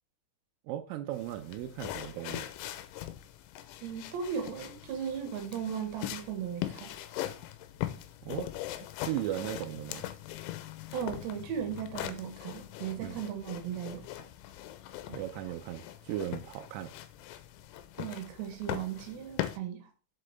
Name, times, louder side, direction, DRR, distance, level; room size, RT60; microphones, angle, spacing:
voice 1, 0.7-2.5 8.2-8.5 9.0-10.0 13.0-13.2 15.1-16.9, right 12 dB, 90° right, 3.2 m, -37 dB
sound 1, 1.1-19.6, left 13 dB, 85° left, 2.9 m, -41 dB
voice 2, 3.8-6.9 10.9-14.0 18.0-19.8, right 8 dB, 70° right, 3.5 m, -37 dB
7.6 x 7.2 x 3.4 m
omnidirectional pair, 5.5 m